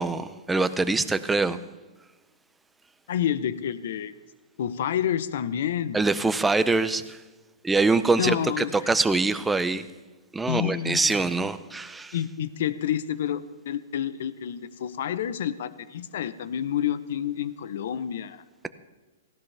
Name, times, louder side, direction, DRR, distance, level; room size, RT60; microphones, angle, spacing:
voice 1, 0.0-1.6 5.9-7.2 7.6-9.9 10.3-12.1, right 3 dB, 5° right, 12 dB, 0.6 m, -24 dB
voice 2, 3.1-4.1 4.6-6.0 8.2-8.9 10.5-11.3 12.1-18.4, left 10 dB, 60° left, 15 dB, 0.8 m, -29 dB
18.0 x 16.0 x 3.4 m, 1.2 s
hypercardioid pair, 150°, 0 cm